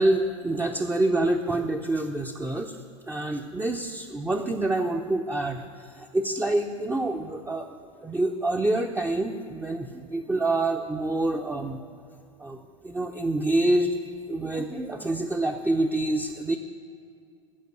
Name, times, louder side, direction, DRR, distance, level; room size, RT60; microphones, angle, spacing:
voice 1, 0.0-2.8 3.1-11.8 12.4-14.0 14.3-16.6, right 2 dB, 10° right, 3 dB, 0.7 m, -27 dB
14.0 x 5.3 x 8.8 m, 2.4 s
hypercardioid pair, 85°, 17 cm